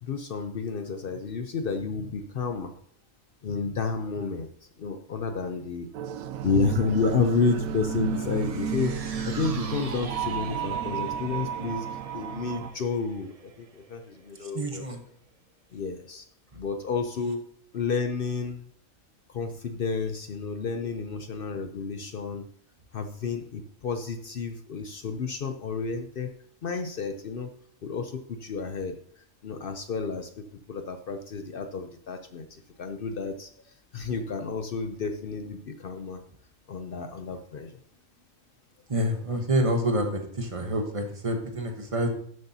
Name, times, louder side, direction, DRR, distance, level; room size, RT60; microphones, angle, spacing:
voice 1, 0.0-2.7 3.4-4.5 4.8-5.9 6.4-9.0 9.3-11.9 12.1-14.9 15.7-16.3 16.5-18.7 19.3-22.5 22.9-26.3 26.6-27.5 27.8-36.2 36.7-37.8, left 4 dB, 55° left, 8 dB, 0.6 m, -31 dB
sound 1, 5.9-12.7, right 7 dB, 85° right, 1.1 m, -32 dB
sound 2, 8.1-14.6 14.9-15.0, right 5 dB, 45° right, 0.4 m, -44 dB
voice 2, 14.4-15.0 16.5-16.6 38.9-42.1, right 1 dB, 25° right, 4 dB, 1.0 m, -27 dB
12.0 x 7.8 x 2.7 m, 0.66 s
omnidirectional pair, 1.4 m